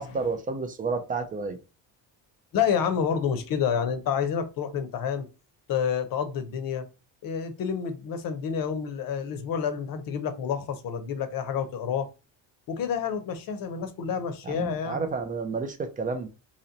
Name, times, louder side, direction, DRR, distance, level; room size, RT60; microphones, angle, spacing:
voice 1, 0.0-1.6 14.5-16.3, right 4 dB, 20° right, 0.4 m, -30 dB
voice 2, 2.5-5.3 5.7-6.9 7.2-12.1 12.7-15.0, left 7 dB, 50° left, 0.7 m, -29 dB
3.0 x 2.9 x 3.9 m
cardioid pair, 150°, 43 cm